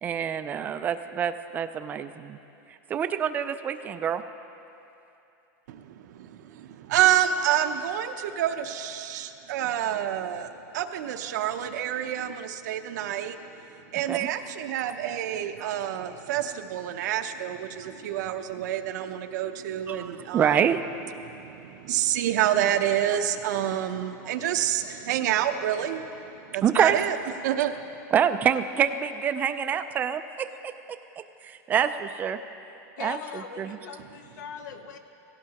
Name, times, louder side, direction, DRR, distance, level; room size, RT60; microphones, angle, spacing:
voice 1, 0.0-2.4 2.9-4.2 14.1-14.3 15.6-15.7 19.9-20.8 26.6-27.0 28.1-30.5 31.4-32.4 33.0-33.2 33.6-33.8, right 8 dB, 20° right, 10 dB, 0.3 m, -26 dB
voice 2, 5.7-13.4 13.9-20.6 21.2-27.2 27.4-27.9, right 11 dB, 75° right, 8 dB, 0.7 m, -28 dB
voice 3, 33.0-35.0, left 7 dB, 90° left, 7 dB, 1.1 m, -40 dB
16.5 x 16.0 x 2.9 m, 2.8 s
supercardioid pair, 165°, 9 cm